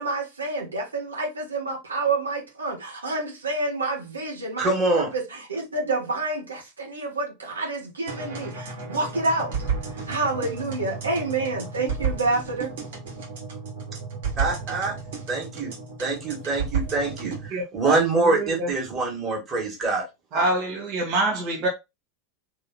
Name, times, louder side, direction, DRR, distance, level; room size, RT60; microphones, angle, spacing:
voice 1, 0.0-9.5 10.1-12.7, right 3 dB, 80° right, 1.4 m, -28 dB
voice 2, 4.6-5.1 14.4-15.0 15.3-15.7 16.0-20.1, right 3 dB, 25° right, 2.1 m, -25 dB
sound 1, 8.1-17.5, right 5 dB, 60° right, 1.8 m, -32 dB
voice 3, 17.5-18.0 18.3-18.7 20.3-21.7, right 2 dB, 40° right, 1.5 m, -25 dB
3.9 x 3.1 x 4.2 m
figure-of-eight pair, 85°, 0 cm